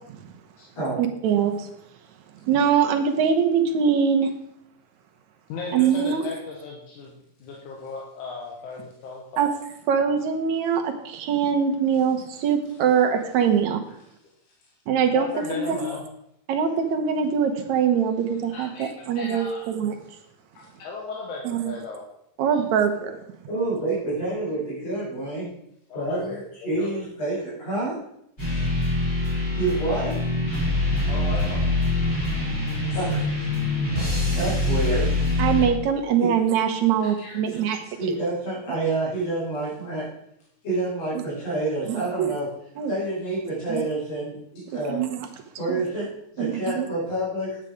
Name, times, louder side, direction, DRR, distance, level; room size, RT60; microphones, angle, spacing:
voice 1, 1.0-1.7 2.4-4.3 5.7-6.3 9.4-9.5 9.9-13.8 14.9-15.8 16.5-20.2 21.4-21.8 22.4-23.2 35.4-38.2 41.2-41.3 41.9-42.3 42.8-42.9 43.7-43.8 44.7-45.3 45.7-45.8 46.4-46.9, right 7 dB, 75° right, 5 dB, 2.3 m, -23 dB
voice 2, 5.5-7.1 7.4-9.5 15.2-16.0 18.5-18.9 19.1-19.7 20.5-22.0 22.5-22.6 25.9-26.4 26.7-27.0 31.1-31.7 37.0-37.9, left 4 dB, 85° left, -1 dB, 2.9 m, -36 dB
voice 3, 23.5-25.5 25.9-26.4 26.6-27.9 29.6-30.1 32.9-33.5 34.4-35.1 36.2-36.3 38.0-40.1 40.6-42.5 42.9-45.0 45.6-46.1 46.3-47.6, right 2 dB, 60° left, -8 dB, 6.4 m, -28 dB
sound 1, 28.4-35.7, left 2 dB, 25° left, 5.2 m, -24 dB
9.7 x 8.2 x 5.0 m, 0.75 s
omnidirectional pair, 3.4 m